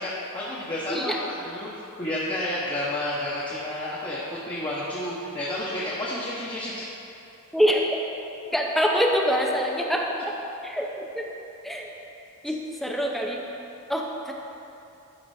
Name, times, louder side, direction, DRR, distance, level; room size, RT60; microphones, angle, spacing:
voice 1, 0.0-1.7 2.0-6.8, left 1 dB, 25° left, -8 dB, 1.0 m, -30 dB
voice 2, 7.5-7.8 8.5-10.1 10.6-11.3 11.6-11.9 12.4-13.4 13.9-14.3, equal, ahead, -1 dB, 0.7 m, -25 dB
12.0 x 3.9 x 4.8 m, 2.9 s
head